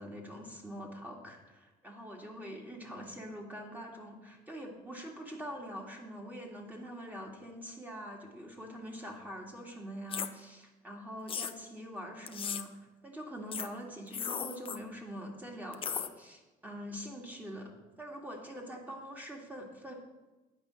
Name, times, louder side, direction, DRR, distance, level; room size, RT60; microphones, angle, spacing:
voice 1, 0.0-12.7 13.0-17.7 18.0-19.9, equal, 10° right, 0 dB, 2.1 m, -44 dB
sound 1, 10.1-10.3 11.3-11.5 12.3-12.6 13.5-13.7 14.1-14.8 15.7-16.1, left 7 dB, 30° left, 0.6 m, -36 dB
9.8 x 5.4 x 8.2 m, 1.2 s
cardioid pair, 110°, 17 cm